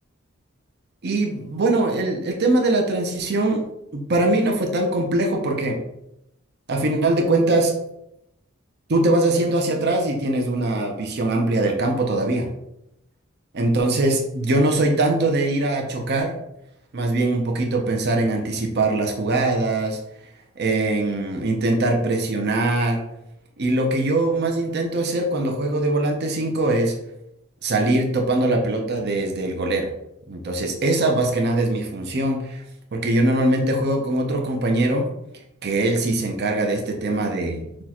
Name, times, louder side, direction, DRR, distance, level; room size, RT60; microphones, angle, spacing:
voice 1, 1.0-3.7 3.9-5.8 6.7-7.7 8.9-12.5 13.5-16.3 16.9-20.0 20.6-23.0 23.6-26.9 27.6-29.9 30.3-32.6 32.9-35.1 35.6-37.8, right 2 dB, 55° right, 2 dB, 0.7 m, -22 dB
6.0 x 2.4 x 2.9 m, 0.82 s
head